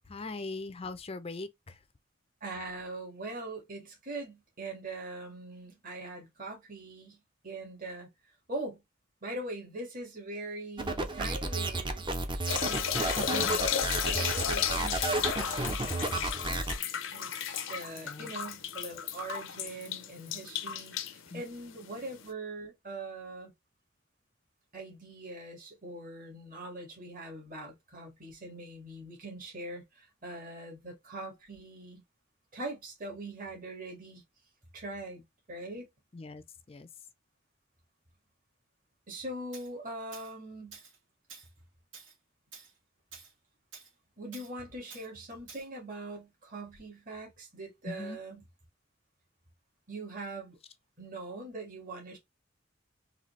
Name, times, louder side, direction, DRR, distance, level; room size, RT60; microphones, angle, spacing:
voice 1, 0.1-1.8 13.2-13.6 18.0-18.3 21.3-21.4 36.1-36.9 47.8-48.2, left 3 dB, 30° left, 0.5 m, -41 dB
voice 2, 2.4-7.2 7.4-8.1 8.5-8.8 9.2-12.0 12.6-13.4 13.6-16.7 17.1-23.5 24.7-32.0 32.5-34.2 34.7-35.2 35.5-35.9 39.1-40.8 44.2-48.4 49.9-50.6 51.0-52.2, right 2 dB, 45° right, 1.8 m, -42 dB
sound 1, 10.8-16.8, right 2 dB, 25° right, 0.6 m, -32 dB
sound 2, 12.5-22.3, left 8 dB, 75° left, 0.6 m, -34 dB
Tools, 39.5-39.7 40.1-40.3 40.7-41.0 41.3-41.5 41.9-42.2 42.5-42.7 43.1-43.3 43.7-43.9 44.3-44.5 44.9-45.1 45.5-45.7, right 5 dB, 70° right, 2.1 m, -50 dB
4.1 x 2.7 x 3.1 m
head